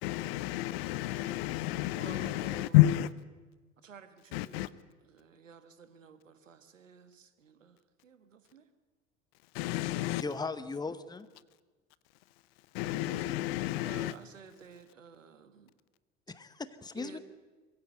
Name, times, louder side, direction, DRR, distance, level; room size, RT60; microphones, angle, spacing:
voice 1, 0.0-3.1 4.3-4.7 9.5-10.2 12.7-14.1, left 16 dB, 50° left, 19 dB, 0.8 m, -29 dB
voice 2, 1.9-2.8 3.8-4.8 5.1-7.8 8.0-8.6 13.0-13.4 13.8-15.7 17.0-17.2, right 6 dB, 80° right, 11 dB, 1.5 m, -52 dB
voice 3, 10.2-11.3 16.3-17.2, left 4 dB, 10° left, 15 dB, 1.0 m, -38 dB
22.5 x 15.5 x 8.2 m, 1.3 s
figure-of-eight pair, 75°, 38 cm